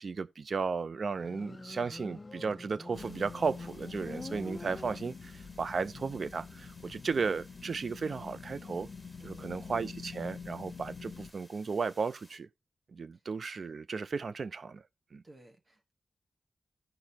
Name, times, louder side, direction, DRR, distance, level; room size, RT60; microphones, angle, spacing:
voice 1, 0.0-8.9 9.2-12.5 12.9-14.8 15.1-15.2, right 5 dB, 65° right, 0.5 m, -35 dB
Motorcycle, 1.1-5.5, left 3 dB, 30° left, 0.4 m, -47 dB
sound 1, 2.9-11.3, left 5 dB, 65° left, 0.9 m, -46 dB
sound 2, 2.9-12.4, left 1 dB, 5° right, 2.0 m, -60 dB
voice 2, 9.2-9.6 15.2-15.9, right 1 dB, 45° right, 1.4 m, -56 dB
15.5 x 5.3 x 2.8 m
wide cardioid pair, 90°, 0 cm